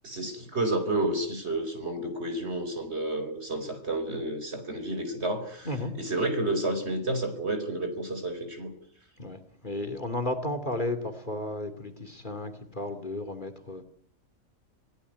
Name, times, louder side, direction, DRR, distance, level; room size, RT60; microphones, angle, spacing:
voice 1, 0.0-8.7, right 1 dB, 50° right, 7 dB, 4.8 m, -30 dB
voice 2, 9.2-13.8, left 1 dB, 35° left, 7 dB, 2.7 m, -33 dB
27.0 x 17.0 x 9.5 m, 0.66 s
omnidirectional pair, 1.5 m